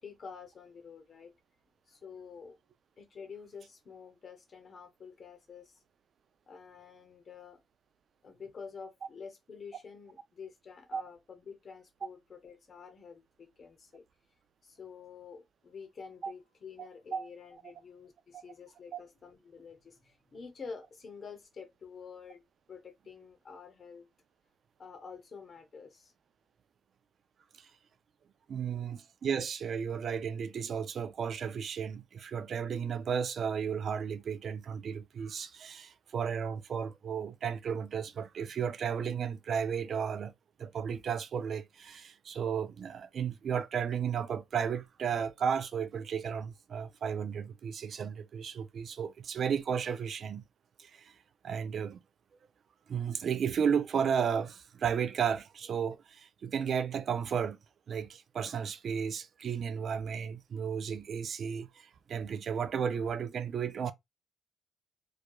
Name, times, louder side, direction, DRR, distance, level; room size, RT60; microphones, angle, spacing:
voice 1, 0.0-1.3 1.9-2.6 3.0-5.8 6.5-7.6 8.2-14.0 14.6-22.4 22.7-24.0 24.8-26.1 28.5-28.9, left 5 dB, 45° left, 0.9 m, -49 dB
voice 2, 16.8-17.3 18.9-19.0 28.5-40.3 40.6-50.4 50.8-51.1 51.4-52.0 52.9-57.6 57.9-63.9, right 7 dB, 55° right, 0.3 m, -34 dB
2.8 x 2.3 x 2.2 m
cardioid pair, 90°, 0 cm